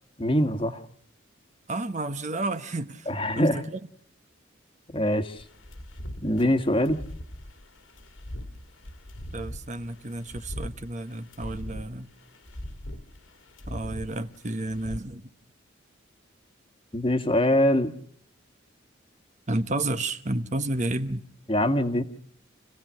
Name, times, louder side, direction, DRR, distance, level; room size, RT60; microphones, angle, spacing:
voice 1, 0.2-0.8 3.1-3.6 4.9-5.4 6.2-7.0 16.9-17.9 21.5-22.0, left 1 dB, 25° left, 1.6 m, -23 dB
voice 2, 1.7-3.1 3.4-3.8 9.3-12.1 13.7-15.2 19.5-21.2, right 2 dB, 40° right, 1.1 m, -31 dB
sound 1, 5.4-15.0, left 1 dB, 85° left, 2.7 m, -41 dB
28.5 x 16.5 x 6.3 m
head